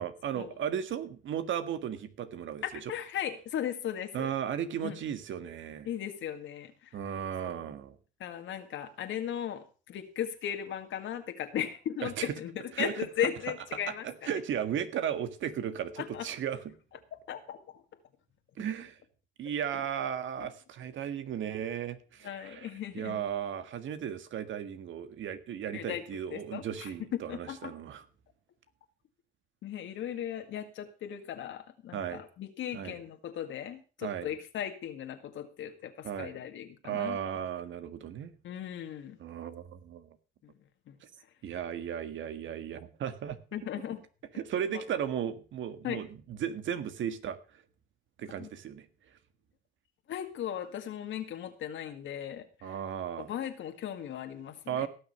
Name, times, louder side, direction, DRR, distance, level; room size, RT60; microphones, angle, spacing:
voice 1, 0.0-2.9 4.1-5.9 6.9-8.0 12.0-12.3 12.7-13.1 13.9-16.8 18.6-19.0 19.4-28.0 31.9-32.2 32.7-32.9 34.0-34.3 36.0-36.3 36.8-38.3 39.2-40.1 41.4-43.4 44.4-47.4 48.2-48.9 52.6-53.3 54.7-54.9, right 9 dB, 75° right, 11 dB, 1.7 m, -35 dB
voice 2, 2.6-4.3 4.8-5.0 5.8-7.0 7.4-7.6 8.2-14.3 16.0-16.3 17.1-17.8 19.7-19.8 20.4-20.5 22.2-23.2 25.7-26.0 26.3-27.7 29.6-37.2 38.4-39.2 40.4-40.5 40.9-41.0 43.5-44.0 44.7-44.8 45.8-46.0 48.4-48.5 50.1-52.7 53.3-54.9, left 10 dB, 75° left, 6 dB, 2.0 m, -37 dB
18.0 x 6.7 x 6.7 m, 0.37 s
cardioid pair, 90°, 20 cm